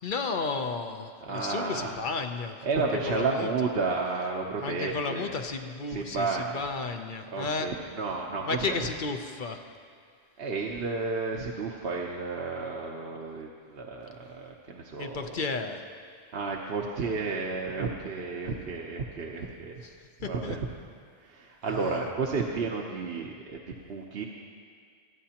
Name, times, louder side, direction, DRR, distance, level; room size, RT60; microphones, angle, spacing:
voice 1, 0.0-3.7 4.6-7.7 8.5-9.6 15.0-15.8 19.8-19.9 20.2-20.6 21.7-22.0, left 4 dB, 55° left, 6 dB, 0.9 m, -33 dB
voice 2, 1.2-2.0 2.6-5.3 5.9-6.6 7.3-8.8 10.4-15.3 16.3-19.8 20.2-20.6 21.2-24.3, right 4 dB, 70° right, -1 dB, 1.1 m, -32 dB
25.5 x 9.3 x 2.9 m, 2.1 s
omnidirectional pair, 1.1 m